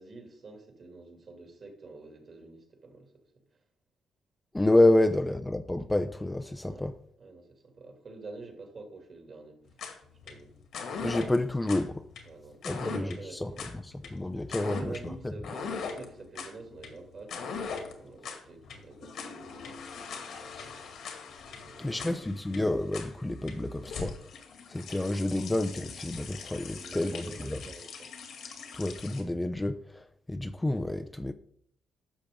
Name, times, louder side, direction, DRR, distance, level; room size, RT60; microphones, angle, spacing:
voice 1, 0.0-3.2 6.6-6.9 7.2-9.6 10.2-10.5 12.2-13.7 14.6-20.9 21.5-22.2 26.5-28.1, right 3 dB, 45° right, 2.6 m, -48 dB
voice 2, 4.5-6.9 11.0-12.0 12.6-13.5 13.8-14.9 21.8-24.2 24.7-27.6 28.7-31.3, left 1 dB, 10° left, 0.6 m, -29 dB
sound 1, 9.7-29.2, left 5 dB, 70° left, 2.1 m, -41 dB
11.5 x 6.3 x 3.6 m
cardioid pair, 90°, 0 cm